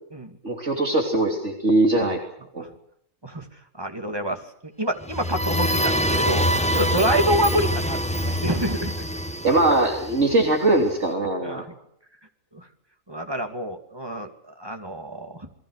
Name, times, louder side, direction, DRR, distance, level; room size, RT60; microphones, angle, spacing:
voice 1, 0.4-2.2 2.5-2.6 9.4-11.6, right 2 dB, 50° right, 3 dB, 3.5 m, -21 dB
voice 2, 3.8-8.9 11.4-11.7 12.5-12.7 13.1-15.5, right 1 dB, 15° right, 5 dB, 2.5 m, -27 dB
sound 1, 5.0-10.8, equal, 5° left, 1.3 m, -25 dB
28.0 x 21.0 x 6.6 m, 0.70 s
omnidirectional pair, 1.6 m